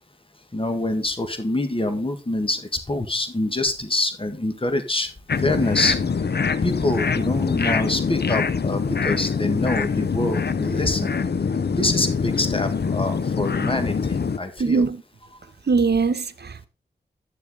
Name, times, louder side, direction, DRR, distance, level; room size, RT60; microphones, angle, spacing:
voice 1, 0.5-5.1 5.4-6.0 6.6-11.1 11.7-14.8, left 2 dB, 30° left, 1.8 m, -25 dB
sound 1, 5.3-14.4, left 5 dB, 70° left, 0.7 m, -24 dB
voice 2, 14.6-15.0 15.7-16.7, right 4 dB, 70° right, 0.9 m, -21 dB
11.5 x 7.1 x 3.9 m
cardioid pair, 40°, 18 cm